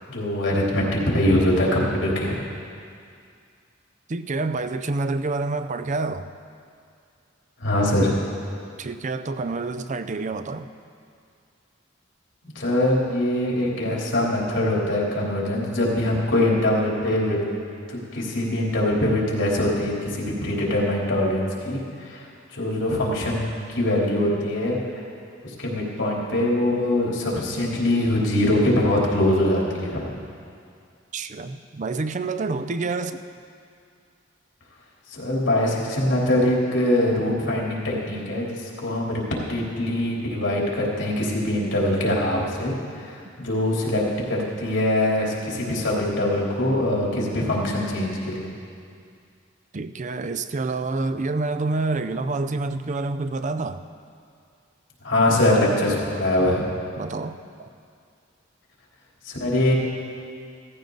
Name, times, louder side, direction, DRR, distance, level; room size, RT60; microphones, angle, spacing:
voice 1, 0.1-2.4 7.6-8.1 12.4-17.4 17.9-24.8 25.4-30.1 35.1-44.0 44.3-48.5 55.0-56.7 59.2-59.7, left 1 dB, 80° left, -4 dB, 3.4 m, -23 dB
voice 2, 4.1-6.3 8.8-10.7 13.8-14.0 31.1-33.2 49.7-53.8 57.0-57.7, right 3 dB, 40° right, 10 dB, 0.5 m, -28 dB
16.5 x 14.5 x 3.9 m, 2.3 s
head